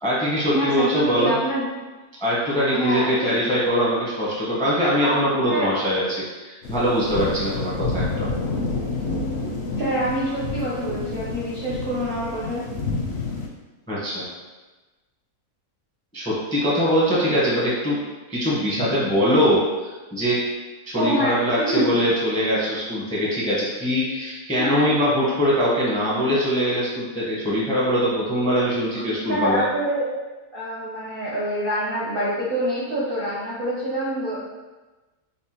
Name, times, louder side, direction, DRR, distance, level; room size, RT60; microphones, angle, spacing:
voice 1, 0.0-1.3 2.2-8.3 13.9-14.3 16.1-18.0 18.3-20.4 20.9-29.6, equal, 5° left, -7 dB, 0.6 m, -22 dB
voice 2, 0.5-1.7 2.7-3.3 5.0-5.2 5.5-5.7 9.8-12.6 21.0-21.3 21.7-21.9 24.6-25.0 29.0-30.1 30.5-34.4, equal, 50° right, -7 dB, 0.7 m, -26 dB
sound 1, 6.6-13.5, left 3 dB, 60° left, 0.7 m, -29 dB
5.3 x 2.1 x 2.8 m, 1.2 s
omnidirectional pair, 1.7 m